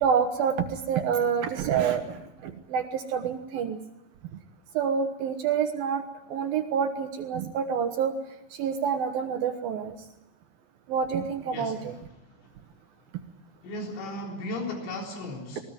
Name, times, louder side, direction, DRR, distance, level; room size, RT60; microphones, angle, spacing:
voice 1, 0.0-3.8 4.7-6.0 6.3-8.1 8.6-10.0 10.9-11.9, right 7 dB, 75° right, 6 dB, 2.2 m, -27 dB
voice 2, 11.5-12.0 12.4-12.5 13.6-15.6, left 1 dB, 65° left, 1 dB, 6.3 m, -36 dB
20.5 x 19.5 x 9.2 m, 0.88 s
omnidirectional pair, 5.9 m